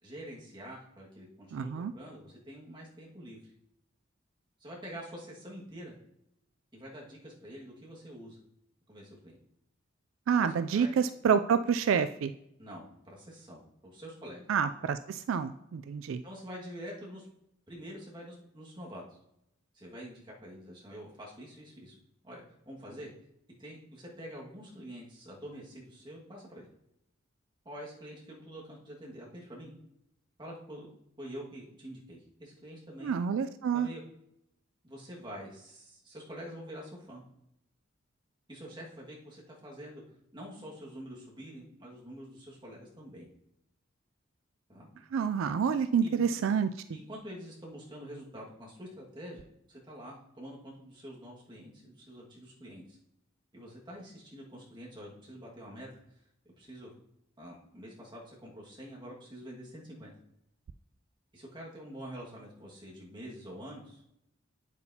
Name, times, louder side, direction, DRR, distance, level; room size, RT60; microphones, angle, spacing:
voice 1, 0.0-3.4 4.6-6.0 6.7-8.4 8.9-9.4 10.4-10.9 12.6-14.5 16.2-17.3 17.7-19.0 19.7-22.0 22.2-23.1 23.6-26.7 27.7-29.7 30.4-30.9 31.2-33.2 33.7-34.0 34.8-37.2 38.5-40.0 40.3-43.3 44.7-44.9 46.0-46.2 46.9-53.0 53.5-55.9 56.6-56.9 57.4-60.1 61.3-64.0, equal, 25° right, -4 dB, 1.8 m, -46 dB
voice 2, 1.5-1.9 10.3-12.3 14.5-16.2 33.0-33.9 45.1-46.7, right 7 dB, 75° right, 11 dB, 0.3 m, -28 dB
8.7 x 8.2 x 2.8 m, 0.80 s
head